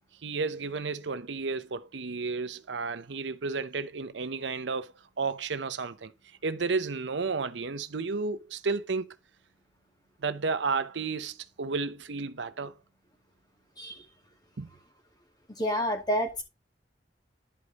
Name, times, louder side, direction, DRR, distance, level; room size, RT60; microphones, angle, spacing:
voice 1, 0.2-9.2 10.2-12.8 14.6-14.7, right 4 dB, 75° right, 0.7 m, -32 dB
voice 2, 15.6-16.4, equal, 25° left, 2.3 m, -29 dB
11.0 x 5.1 x 4.0 m
head